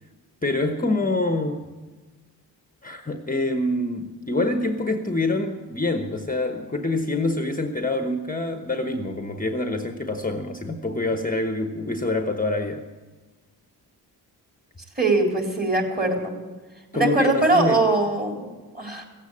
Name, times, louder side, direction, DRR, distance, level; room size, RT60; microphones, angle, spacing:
voice 1, 0.4-1.6 2.8-12.8 16.9-17.8, left 2 dB, 20° left, 6 dB, 1.1 m, -26 dB
voice 2, 15.0-16.4 16.9-19.1, right 2 dB, 25° right, 1 dB, 3.9 m, -22 dB
16.0 x 8.3 x 8.5 m, 1.3 s
cardioid pair, 55°, 41 cm